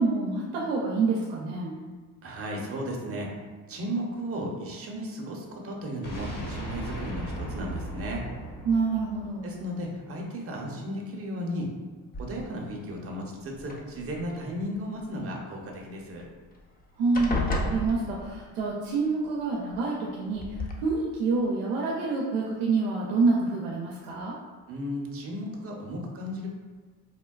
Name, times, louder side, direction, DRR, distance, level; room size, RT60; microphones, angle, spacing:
voice 1, 0.0-1.8 8.6-9.5 17.0-24.3, right 3 dB, 90° right, -4 dB, 0.6 m, -27 dB
voice 2, 2.2-3.4 3.7-8.2 9.4-11.7 12.2-16.2 24.7-26.5, equal, 30° right, -1 dB, 0.7 m, -35 dB
sound 1, 6.0-10.0, right 1 dB, 40° left, 1.1 m, -37 dB
sound 2, 12.1-12.7 13.6-14.4 16.2-16.3 16.6-16.8 17.1-18.6 19.7-19.8 20.4-20.7, left 1 dB, 20° left, 0.4 m, -32 dB
3.5 x 2.2 x 2.3 m, 1.4 s
hypercardioid pair, 55°, 49 cm